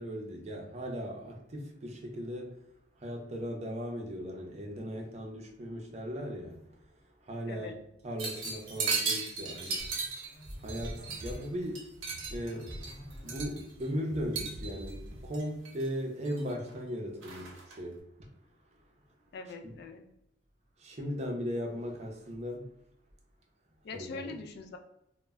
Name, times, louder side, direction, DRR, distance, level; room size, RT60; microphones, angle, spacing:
voice 1, 0.0-2.6 3.0-6.6 7.3-7.8 8.0-9.9 10.6-11.9 12.3-12.8 13.2-18.0 20.8-22.7 23.9-24.3, equal, 35° right, 0.5 m, -37 dB
voice 2, 7.4-7.8 19.3-20.0 23.8-24.8, left 4 dB, 55° left, 0.3 m, -42 dB
sound 1, 8.2-11.4 11.8-13.8 14.3-14.9 15.3-15.9 16.3-16.8 17.2-17.8, right 4 dB, 85° right, 0.7 m, -36 dB
sound 2, 9.8-15.6, equal, 30° left, 0.7 m, -45 dB
2.1 x 2.0 x 3.4 m
head